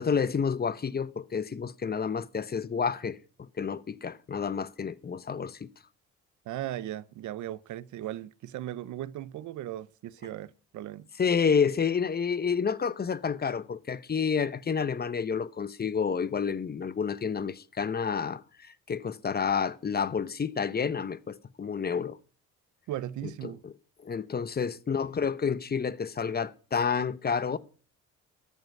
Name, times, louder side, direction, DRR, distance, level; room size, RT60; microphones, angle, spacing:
voice 1, 0.0-5.7 11.2-22.2 23.4-23.7 24.0-27.6, left 6 dB, 30° left, 0.8 m, -29 dB
voice 2, 6.5-11.1 22.9-23.6, right 13 dB, 75° right, 0.7 m, -37 dB
13.5 x 5.6 x 9.3 m
cardioid pair, 90°, 30 cm